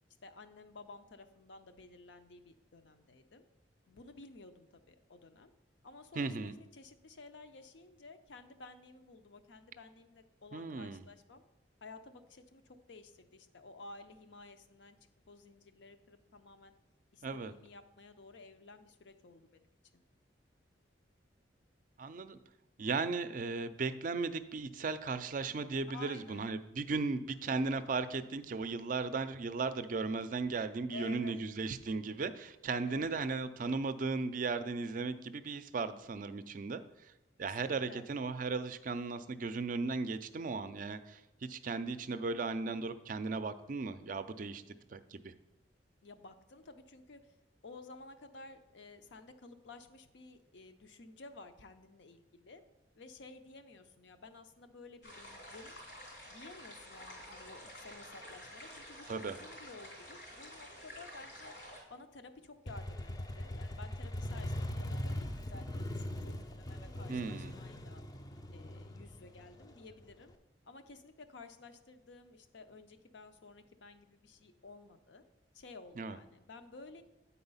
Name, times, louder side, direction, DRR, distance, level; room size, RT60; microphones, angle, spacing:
voice 1, 0.2-3.4 3.9-5.5 5.8-11.4 11.8-15.0 15.3-16.8 17.1-19.7 19.9-20.0 25.9-26.5 30.9-31.4 32.9-33.2 37.4-38.0 46.0-47.2 47.6-52.6 53.0-55.8 56.3-61.5 61.9-68.0 68.5-70.3 70.6-75.2 75.5-77.0, left 3 dB, 75° left, 8 dB, 0.6 m, -53 dB
voice 2, 6.2-6.5 10.5-11.0 17.2-17.5 22.0-22.4 22.8-36.8 37.4-45.3 59.1-59.4 67.1-67.5 76.0-76.2, right 4 dB, 45° right, 12 dB, 0.4 m, -36 dB
sound 1, 55.0-61.8, equal, 90° left, 2.9 m, -50 dB
Motorcycle, 62.7-70.3, left 1 dB, 20° left, 0.4 m, -40 dB
8.7 x 4.2 x 5.5 m, 0.93 s
head